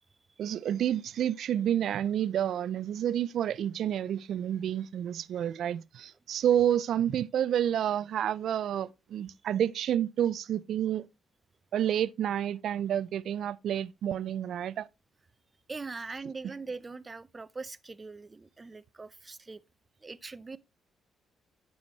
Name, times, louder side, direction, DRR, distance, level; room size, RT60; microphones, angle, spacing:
voice 1, 0.4-11.1 11.7-14.9, right 10 dB, 70° right, 0.4 m, -29 dB
voice 2, 15.7-19.6 20.0-20.6, right 4 dB, 30° right, 0.7 m, -41 dB
9.4 x 7.0 x 3.1 m
supercardioid pair, 65°, 0 cm